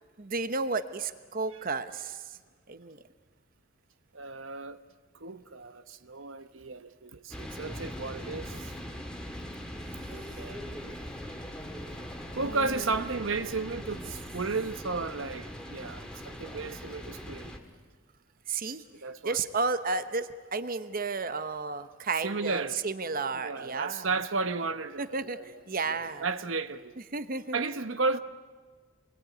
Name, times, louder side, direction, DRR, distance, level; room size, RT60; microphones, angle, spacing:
voice 1, 0.2-2.2 2.7-3.0 12.4-12.6 18.5-18.8 19.2-24.1 25.0-26.3 27.1-27.6, right 4 dB, 45° right, 1.0 m, -32 dB
voice 2, 4.1-4.8 5.2-8.7 10.1-10.9 12.3-17.5 19.0-19.4 22.2-22.8 23.3-25.5 25.8-27.0 27.5-28.2, right 4 dB, 75° right, 1.1 m, -34 dB
sound 1, 7.3-17.6, equal, 5° left, 2.3 m, -41 dB
27.0 x 21.5 x 9.6 m
head